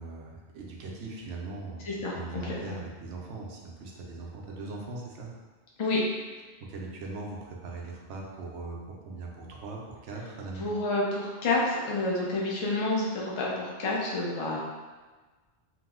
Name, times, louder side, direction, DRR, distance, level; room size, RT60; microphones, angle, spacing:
voice 1, 0.0-1.8 2.1-5.3 6.6-10.6, right 3 dB, 90° right, -1 dB, 0.9 m, -40 dB
voice 2, 1.8-2.6 5.8-6.0 10.6-14.6, left 2 dB, 40° left, -4 dB, 0.4 m, -29 dB
2.9 x 2.0 x 3.5 m, 1.3 s
omnidirectional pair, 1.2 m